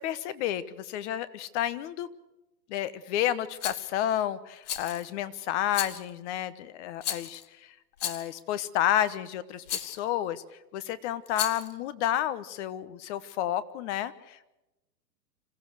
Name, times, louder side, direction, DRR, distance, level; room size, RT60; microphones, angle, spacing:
voice 1, 0.0-2.1 2.7-7.7 8.0-10.4 10.7-14.5, left 12 dB, 45° left, 15 dB, 1.3 m, -31 dB
Rattle, 3.6-3.9 4.6-5.1 5.7-6.1 7.0-7.4 8.0-8.4 9.7-10.0 11.3-11.7, left 10 dB, 65° left, 1.9 m, -34 dB
26.5 x 15.0 x 6.6 m, 0.97 s
hypercardioid pair, 125°, 49 cm